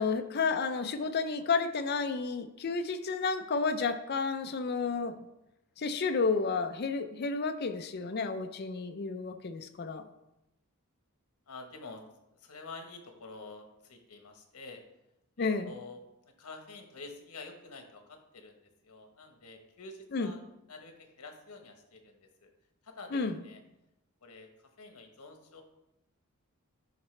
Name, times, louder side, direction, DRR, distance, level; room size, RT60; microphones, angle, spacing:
voice 1, 0.0-5.3 5.8-10.1 15.4-15.7 20.1-20.3 23.1-23.4, left 4 dB, 45° left, 9 dB, 0.5 m, -31 dB
voice 2, 11.5-12.0 12.4-14.8 15.4-16.0 16.4-20.4 20.7-22.5 22.8-23.6 24.2-24.5 24.8-25.6, left 3 dB, 90° left, 5 dB, 1.1 m, -48 dB
11.0 x 4.1 x 3.2 m, 0.88 s
head